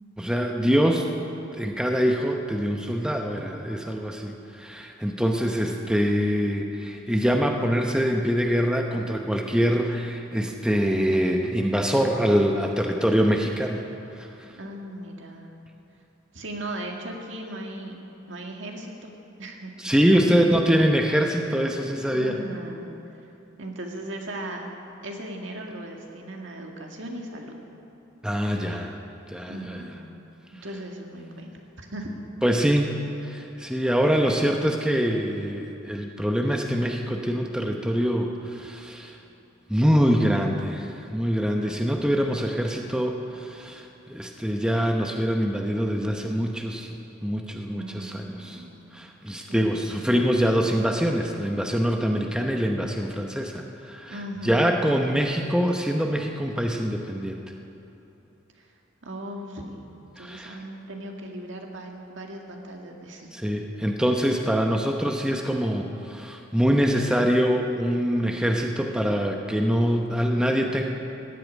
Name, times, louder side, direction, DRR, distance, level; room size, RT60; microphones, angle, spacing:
voice 1, 0.2-1.1 1.5-13.8 14.1-14.3 19.8-22.3 28.2-28.9 29.3-29.8 32.4-32.9 33.2-39.2 39.7-46.9 47.2-48.6 48.9-54.2 54.4-57.4 60.2-60.6 63.3-70.8, equal, 5° right, 2 dB, 0.8 m, -24 dB
voice 2, 14.5-15.5 16.3-18.0 18.3-19.1 19.4-20.6 22.1-22.9 23.6-24.7 25.0-27.6 29.5-30.0 30.5-31.5 31.8-32.2 47.8-48.8 49.5-49.8 54.1-54.7 58.6-58.7 59.0-59.9 60.2-63.3, right 1 dB, 65° right, 1 dB, 2.0 m, -37 dB
15.5 x 8.7 x 9.8 m, 2.9 s
head